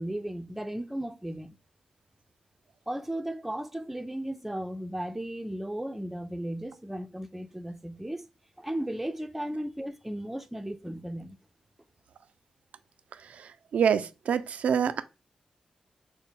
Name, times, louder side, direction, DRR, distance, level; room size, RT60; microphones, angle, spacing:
voice 1, 0.0-1.6 2.9-8.2 8.6-11.4, right 1 dB, 5° right, 0.5 m, -35 dB
voice 2, 13.7-15.0, right 7 dB, 80° right, 0.3 m, -25 dB
4.0 x 2.1 x 3.6 m
cardioid pair, 50°, 2 cm